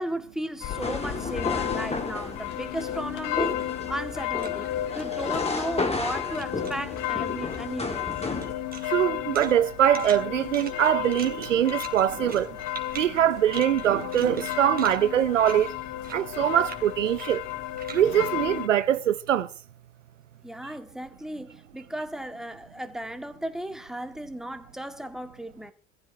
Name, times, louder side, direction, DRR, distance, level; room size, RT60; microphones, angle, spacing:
voice 1, 0.0-3.6 3.9-4.7 4.9-8.1 20.4-25.7, right 1 dB, ahead, 2.0 m, -35 dB
sound 1, 0.6-18.7, left 13 dB, 60° left, 1.1 m, -33 dB
sound 2, 0.7-8.5, left 3 dB, 15° left, 3.0 m, -33 dB
sound 3, 2.1-6.1 6.3-7.1 7.4-19.3, right 5 dB, 25° right, 3.0 m, -45 dB
voice 2, 8.8-12.5 12.9-15.7 16.1-17.4 17.9-19.5, right 10 dB, 90° right, 0.8 m, -23 dB
22.5 x 14.5 x 2.9 m
hypercardioid pair, 70°, 36 cm